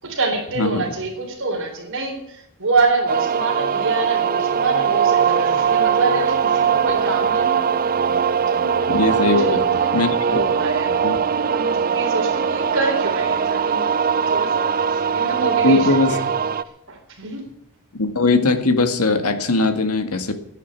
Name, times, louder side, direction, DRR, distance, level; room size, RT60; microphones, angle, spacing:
voice 1, 0.0-7.6 8.5-8.8 9.1-11.0 11.5-16.2 16.9-17.4, right 3 dB, 60° right, 1 dB, 4.0 m, -26 dB
sound 1, 3.1-16.6, right 7 dB, 40° right, 0.6 m, -20 dB
voice 2, 8.9-10.4 11.0-11.2 15.6-16.1 17.9-20.3, left 3 dB, 80° left, 8 dB, 1.9 m, -20 dB
11.0 x 10.0 x 9.6 m, 0.81 s
head